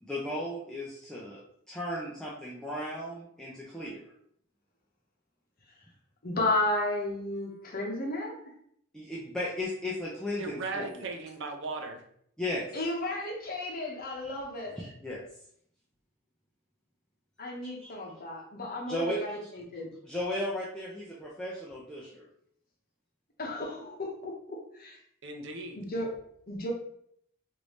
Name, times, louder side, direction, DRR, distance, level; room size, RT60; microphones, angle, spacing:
voice 1, 0.0-1.4 1.7-4.0 8.9-11.0 12.4-12.6 14.2-14.3 14.7-15.2 17.6-17.9 18.9-19.4 20.0-22.3, left 1 dB, 5° left, -6 dB, 0.4 m, -35 dB
voice 2, 6.2-8.3 12.7-14.8 17.4-19.9 23.4-25.0 25.8-26.1 26.5-26.7, left 1 dB, 45° left, 0 dB, 0.8 m, -33 dB
voice 3, 10.4-12.0 25.2-25.8, right 3 dB, 60° right, 4 dB, 0.6 m, -37 dB
3.3 x 2.6 x 3.0 m, 0.67 s
head